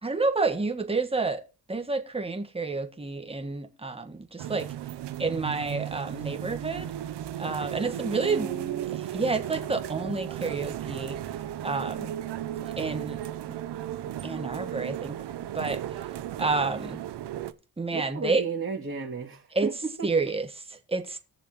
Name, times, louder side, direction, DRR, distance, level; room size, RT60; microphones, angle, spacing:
voice 1, 0.0-1.4 1.7-4.7 5.2-6.9 7.4-8.5 8.9-11.2 11.6-12.1 12.8-13.2 13.5-13.6 14.2-15.2 15.5-15.8 16.4-17.0 17.8-18.4 19.5-19.7 20.0-21.2, right 3 dB, 15° right, 1.4 m, -29 dB
sound 1, 4.4-17.5, right 11 dB, 85° right, 0.8 m, -35 dB
voice 2, 8.1-8.9 17.9-19.7 20.0-20.1, right 4 dB, 30° right, 2.9 m, -34 dB
19.5 x 6.8 x 3.1 m
cardioid pair, 105°, 40 cm